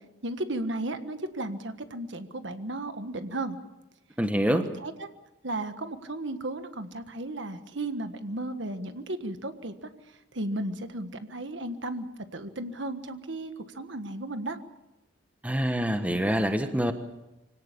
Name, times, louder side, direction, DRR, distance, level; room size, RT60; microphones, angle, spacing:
voice 1, 0.2-3.6 4.5-5.1 5.4-12.1 12.3-14.6, right 1 dB, 65° right, 9 dB, 1.5 m, -34 dB
voice 2, 4.2-4.6 15.4-16.9, equal, 5° right, 7 dB, 1.3 m, -25 dB
25.0 x 17.5 x 8.5 m, 0.97 s
head